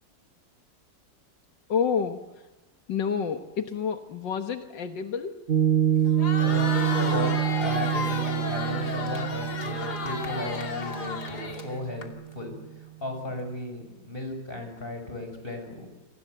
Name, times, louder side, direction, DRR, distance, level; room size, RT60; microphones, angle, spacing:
voice 1, 1.7-2.2 2.9-5.4, left 6 dB, 80° left, 7 dB, 2.0 m, -29 dB
Piano, 5.5-12.2, right 10 dB, 40° right, 1.0 m, -27 dB
Crowd, 6.0-12.1, left 4 dB, 60° left, 3.2 m, -33 dB
voice 2, 6.4-15.9, left 1 dB, 30° left, 5 dB, 6.6 m, -35 dB
29.0 x 24.5 x 8.0 m, 1.1 s
omnidirectional pair, 1.9 m